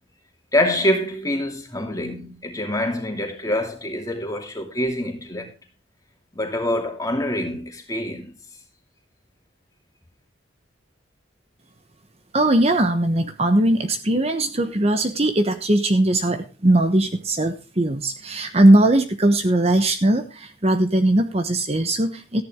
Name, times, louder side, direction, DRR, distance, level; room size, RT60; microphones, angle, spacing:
voice 1, 0.5-5.5 6.3-8.3, left 1 dB, 20° left, 2.7 m, -25 dB
voice 2, 12.3-22.4, right 1 dB, 35° right, 1.1 m, -19 dB
14.0 x 10.5 x 3.6 m
head